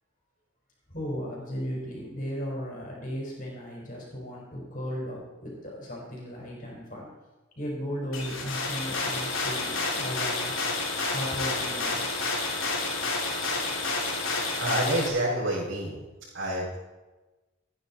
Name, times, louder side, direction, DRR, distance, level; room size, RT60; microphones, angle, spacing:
voice 1, 0.9-7.1 7.5-10.7 11.1-12.3, equal, 40° left, -3 dB, 5.0 m, -36 dB
sound 1, 8.1-15.1, left 3 dB, 85° left, 3.1 m, -30 dB
voice 2, 14.2-16.0 16.3-16.8, right 1 dB, 75° right, -11 dB, 5.5 m, -29 dB
15.5 x 10.5 x 4.4 m, 1.2 s
head